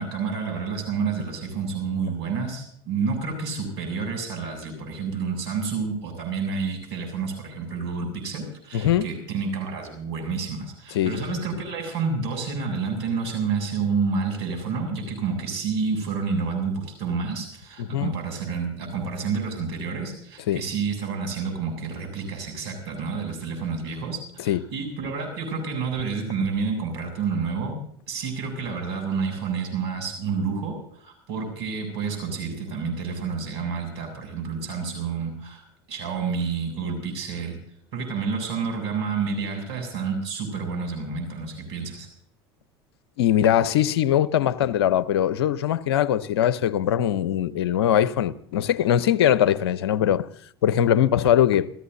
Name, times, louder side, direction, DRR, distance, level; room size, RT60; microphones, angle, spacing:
voice 1, 0.0-27.8 28.1-35.6 35.9-37.6 37.9-42.1, right 5 dB, 80° right, 7.7 m, -29 dB
voice 2, 8.7-9.1 10.9-11.4 17.8-18.1 20.5-20.6 24.5-24.6 43.2-50.3 50.6-51.7, left 10 dB, 80° left, 0.9 m, -21 dB
30.0 x 14.5 x 2.8 m
hypercardioid pair, 85°, 13 cm